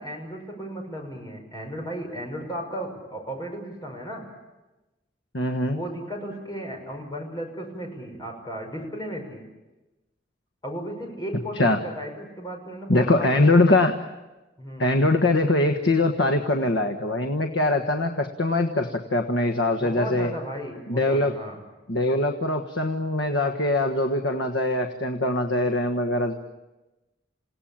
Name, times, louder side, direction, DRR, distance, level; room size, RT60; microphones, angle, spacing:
voice 1, 0.0-4.2 5.7-9.4 10.6-13.9 14.6-14.9 19.8-21.6, right 1 dB, 20° left, 2 dB, 6.0 m, -35 dB
voice 2, 5.3-5.8 11.6-11.8 12.9-13.9 14.8-20.3 20.9-21.3 21.9-26.3, left 2 dB, 80° left, 5 dB, 1.5 m, -22 dB
29.0 x 17.5 x 8.9 m, 1.1 s
head